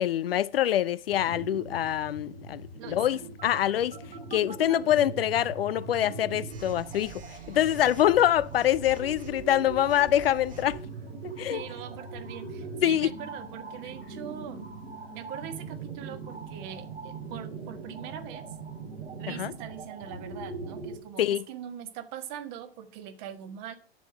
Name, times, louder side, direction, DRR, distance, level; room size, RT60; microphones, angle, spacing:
voice 1, 0.0-2.6 2.9-4.0 4.3-7.2 7.5-10.8 11.4-11.6 12.8-13.1 19.4-19.5 21.2-21.4, left 11 dB, 65° left, 0.6 m, -25 dB
sound 1, 1.1-21.0, right 4 dB, 80° right, 2.7 m, -41 dB
voice 2, 2.8-3.3 11.5-14.7 15.1-18.4 19.2-23.7, right 9 dB, 45° right, 1.6 m, -42 dB
Telephone, 3.4-4.8 6.5-10.8, right 5 dB, 25° right, 2.0 m, -47 dB
9.3 x 7.1 x 6.3 m
figure-of-eight pair, 85°, 31 cm